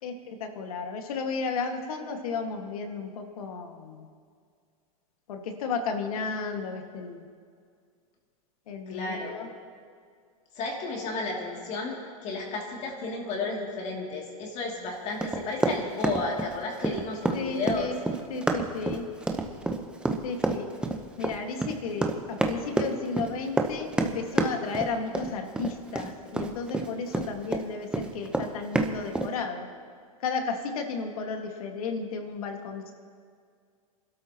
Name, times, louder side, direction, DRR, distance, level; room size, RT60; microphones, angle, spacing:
voice 1, 0.0-4.1 5.3-7.2 8.7-9.5 17.3-19.0 20.2-20.7 21.2-29.7 30.2-32.9, left 4 dB, 75° left, 4 dB, 1.9 m, -33 dB
voice 2, 8.9-9.3 10.5-12.0 12.2-17.9, left 3 dB, 40° left, -1 dB, 2.6 m, -33 dB
Run, 15.2-27.6 27.9-29.3, right 2 dB, 5° right, 0.9 m, -28 dB
27.5 x 12.5 x 3.0 m, 2.1 s
hypercardioid pair, 130°, 19 cm